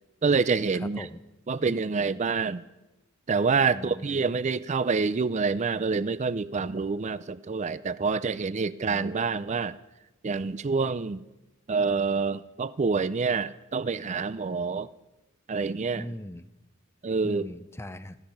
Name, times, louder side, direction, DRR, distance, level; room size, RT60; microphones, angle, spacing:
voice 1, 0.2-1.1 1.5-2.6 3.3-9.8 10.2-11.2 11.7-14.9 15.5-16.1 17.0-17.5, right 4 dB, 35° right, 16 dB, 0.4 m, -27 dB
voice 2, 0.7-1.2 3.7-4.4 8.9-9.2 15.9-16.5 17.2-18.2, left 1 dB, 10° left, 12 dB, 0.6 m, -40 dB
15.5 x 15.0 x 5.3 m, 1.0 s
head